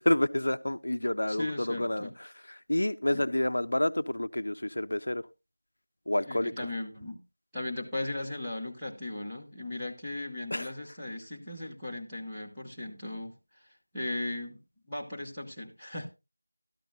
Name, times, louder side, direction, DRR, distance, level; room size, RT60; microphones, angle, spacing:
voice 1, 0.0-2.1 2.7-5.2 6.1-6.5 10.5-10.7, left 1 dB, 65° left, 12 dB, 0.5 m, -28 dB
voice 2, 1.3-2.1 3.1-3.2 6.2-7.2 7.5-13.3 13.9-14.6 14.9-16.1, left 2 dB, ahead, -13 dB, 1.2 m, -37 dB
13.0 x 12.0 x 2.5 m, 0.25 s
figure-of-eight pair, 180°, 0 cm